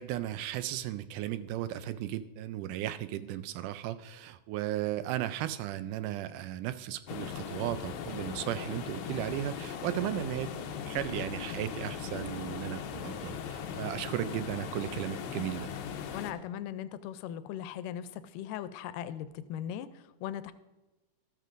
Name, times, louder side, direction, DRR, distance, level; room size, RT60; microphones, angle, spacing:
voice 1, 0.0-10.5 10.8-15.7, right 13 dB, 80° right, 12 dB, 2.0 m, -35 dB
sound 1, 7.1-16.3, left 7 dB, 75° left, 1.9 m, -39 dB
voice 2, 16.1-20.5, left 10 dB, 90° left, 12 dB, 2.2 m, -39 dB
13.5 x 13.0 x 2.5 m, 1.1 s
omnidirectional pair, 3.7 m